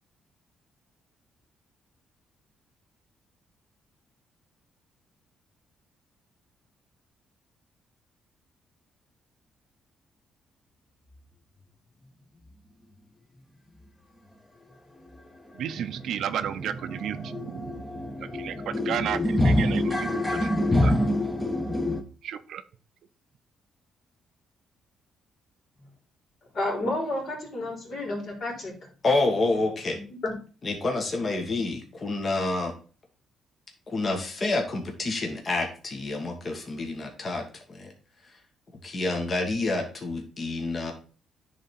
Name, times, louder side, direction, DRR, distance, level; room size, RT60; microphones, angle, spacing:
sound 1, 15.1-15.2 15.6-15.7 16.0-22.0, left 1 dB, 15° left, 1.0 m, -26 dB
voice 1, 15.5-17.8 18.3-20.9 22.2-22.6, right 9 dB, 75° right, 12 dB, 0.5 m, -33 dB
voice 2, 26.5-28.9 29.9-30.3, left 2 dB, 55° left, 0 dB, 3.3 m, -31 dB
voice 3, 29.0-30.0 30.6-32.7 33.9-37.9 38.8-40.9, left 2 dB, 35° left, 3 dB, 1.5 m, -28 dB
10.0 x 3.5 x 4.2 m, 0.37 s
cardioid pair, 90°, 0 cm